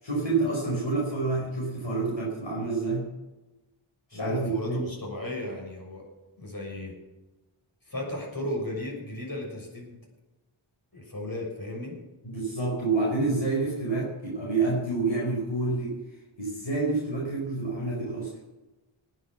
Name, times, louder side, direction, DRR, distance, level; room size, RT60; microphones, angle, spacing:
voice 1, 0.0-3.1 4.1-4.8 12.2-16.0 16.4-18.3, right 3 dB, 65° left, -4 dB, 5.1 m, -28 dB
voice 2, 4.1-6.0 6.4-7.0 7.9-10.0 10.9-12.0, left 1 dB, 45° left, -2 dB, 6.8 m, -35 dB
19.0 x 7.8 x 7.2 m, 1.1 s
wide cardioid pair, 55°, 49 cm